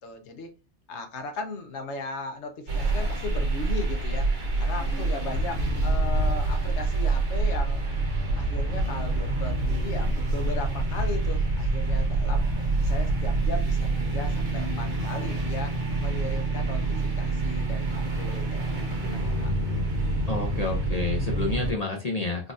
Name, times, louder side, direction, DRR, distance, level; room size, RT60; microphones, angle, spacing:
voice 1, 0.0-0.5 0.9-4.3 4.6-7.9 8.3-12.5 12.8-15.7 16.0-16.8 17.2-19.5, left 2 dB, 80° left, 6 dB, 1.0 m, -37 dB
sound 1, 2.7-21.7, right 2 dB, 85° right, 1.2 m, -26 dB
voice 2, 20.3-22.5, left 3 dB, 45° left, 0 dB, 0.6 m, -29 dB
3.8 x 2.4 x 2.5 m, 0.31 s
omnidirectional pair, 1.2 m